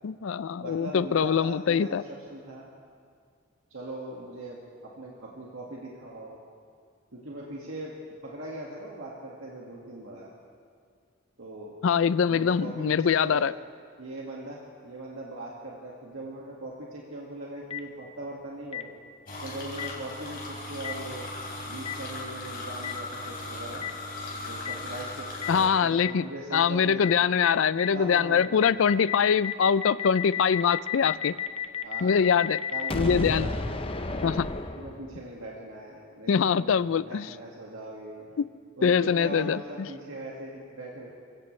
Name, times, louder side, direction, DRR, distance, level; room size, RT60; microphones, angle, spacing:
voice 1, 0.0-2.0 11.8-13.5 25.5-26.2 26.5-31.4 32.0-32.6 32.9-33.5 34.2-34.5 36.3-37.3 38.4-38.5 38.8-39.9, left 6 dB, 70° left, 17 dB, 0.4 m, -23 dB
voice 2, 0.6-2.7 3.7-6.4 7.1-7.9 8.2-10.3 11.4-11.7 12.3-13.5 14.0-18.9 19.4-21.4 21.7-23.9 24.3-27.2 27.9-28.9 31.8-32.2 32.7-33.6 34.2-34.3 34.8-38.3 38.8-41.1, right 1 dB, 80° right, -4 dB, 1.9 m, -40 dB
Boom, 17.7-17.8 18.7-18.8 19.8-19.9 20.8-20.9 21.8-21.9 22.8-22.9 23.8-23.9 24.6-24.7 25.4-25.5 26.0-26.1 26.5-26.6 27.0-27.1 27.4-27.5 27.8-35.3, left 6 dB, 25° left, 0.7 m, -32 dB
sound 1, 19.3-25.7, left 2 dB, 45° left, 3.9 m, -38 dB
27.5 x 16.5 x 3.3 m, 2.2 s
head